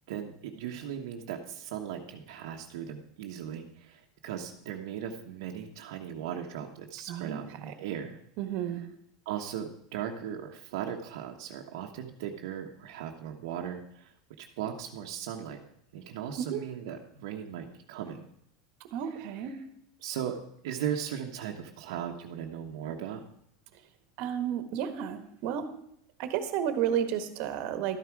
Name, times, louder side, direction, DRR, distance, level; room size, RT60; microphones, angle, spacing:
voice 1, 0.1-8.2 9.2-14.1 14.4-15.6 15.9-18.3 20.0-20.4 20.6-23.2, right 9 dB, 75° right, 1 dB, 1.2 m, -37 dB
voice 2, 7.1-7.4 7.7-7.8 8.4-8.8 16.4-16.6 18.9-19.6 23.7-23.8 24.2-25.7 26.2-28.0, right 9 dB, 55° right, 9 dB, 1.4 m, -32 dB
12.5 x 9.8 x 4.8 m, 0.73 s
supercardioid pair, 140°, 3 cm